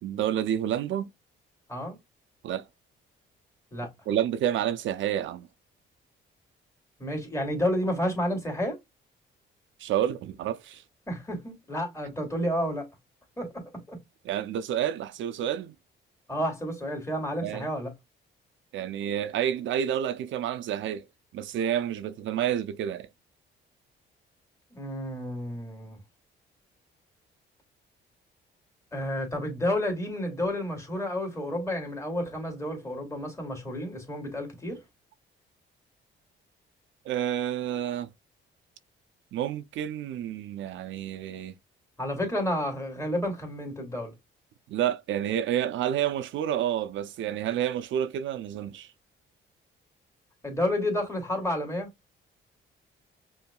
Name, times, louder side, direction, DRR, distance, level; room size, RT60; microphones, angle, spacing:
voice 1, 0.0-1.1 2.4-2.6 4.1-5.5 9.8-10.8 14.3-15.7 17.4-17.7 18.7-21.0 21.3-23.1 37.1-38.1 39.3-41.5 44.7-48.9, right 10 dB, 75° right, 0.5 m, -29 dB
voice 2, 7.0-8.8 11.1-12.9 13.4-14.0 16.3-17.9 24.7-26.0 28.9-34.8 42.0-44.1 50.4-51.9, left 1 dB, 15° left, 2.4 m, -30 dB
5.5 x 2.7 x 2.3 m
cardioid pair, 90°, 20 cm